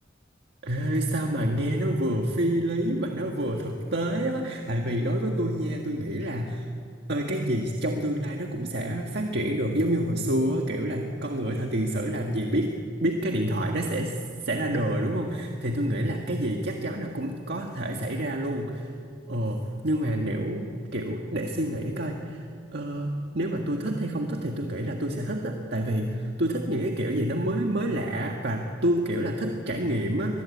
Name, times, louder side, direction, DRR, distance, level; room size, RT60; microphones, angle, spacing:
voice 1, 0.6-6.7 7.1-12.7 13.0-14.2 14.4-18.9 19.3-20.7 20.9-22.4 22.7-30.4, right 1 dB, 65° right, 2 dB, 1.8 m, -28 dB
24.5 x 22.0 x 8.6 m, 2.3 s
head